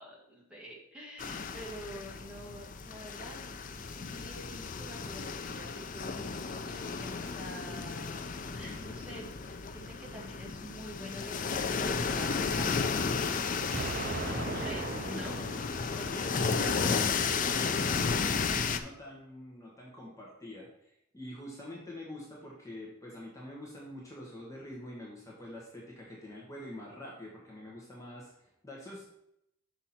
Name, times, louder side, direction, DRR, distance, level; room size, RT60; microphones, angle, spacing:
voice 1, 0.0-3.4 3.9-8.2 8.6-13.3 14.6-15.4 16.6-16.8, equal, 5° right, -4 dB, 1.8 m, -47 dB
sound 1, 1.2-18.8, left 5 dB, 45° left, 0.5 m, -33 dB
Explosion, 13.7-16.7, right 3 dB, 45° right, 0.5 m, -39 dB
voice 2, 14.2-16.6 16.8-29.1, left 1 dB, 15° left, -4 dB, 1.4 m, -45 dB
6.1 x 5.9 x 4.2 m, 0.77 s
head